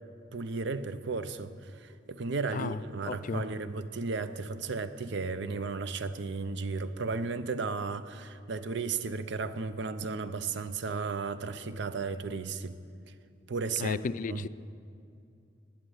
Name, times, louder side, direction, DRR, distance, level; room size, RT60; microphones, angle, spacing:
voice 1, 0.3-12.8 13.5-14.0 14.3-14.5, right 4 dB, 65° right, 0.6 m, -34 dB
voice 2, 3.1-3.4 13.8-14.5, left 4 dB, 45° left, 0.4 m, -33 dB
11.5 x 9.1 x 10.0 m
head